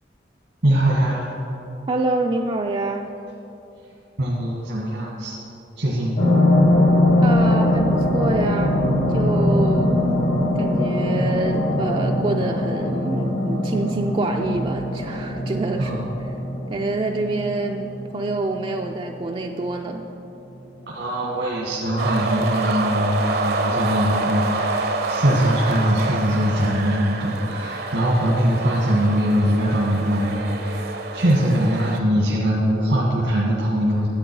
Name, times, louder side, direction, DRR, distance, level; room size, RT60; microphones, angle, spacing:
voice 1, 0.6-1.4 4.2-5.3 5.8-6.2 9.6-9.9 15.8-16.0 20.9-30.8 31.1-34.1, equal, 90° right, -5 dB, 1.7 m, -22 dB
voice 2, 1.9-3.1 7.2-8.8 9.1-9.9 10.6-16.1 16.7-20.1, right 2 dB, 30° right, 2 dB, 0.4 m, -26 dB
sound 1, 6.2-19.1 19.6-19.7, left 1 dB, 90° left, 2.0 m, -21 dB
sound 2, 22.0-32.0, right 3 dB, 60° right, 0.7 m, -27 dB
11.5 x 8.1 x 4.7 m, 2.9 s
head